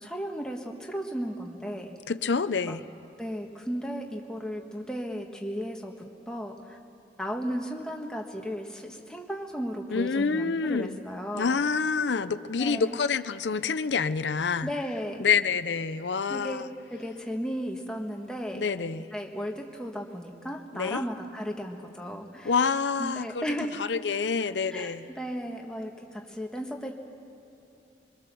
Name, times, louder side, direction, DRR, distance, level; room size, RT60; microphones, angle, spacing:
voice 1, 0.0-1.9 2.7-2.8 3.2-5.9 6.3-6.8 7.2-11.6 12.6-13.0 14.6-15.2 16.3-16.6 16.9-18.7 19.1-22.6 23.0-23.7 24.7-26.9, equal, 5° left, 1 dB, 1.5 m, -35 dB
voice 2, 2.1-2.8 9.9-11.0 11.3-14.7 15.2-16.7 18.5-19.1 20.7-21.0 22.4-23.4 23.8-25.1, left 5 dB, 80° left, 13 dB, 0.6 m, -27 dB
23.5 x 22.0 x 6.9 m, 2.9 s
head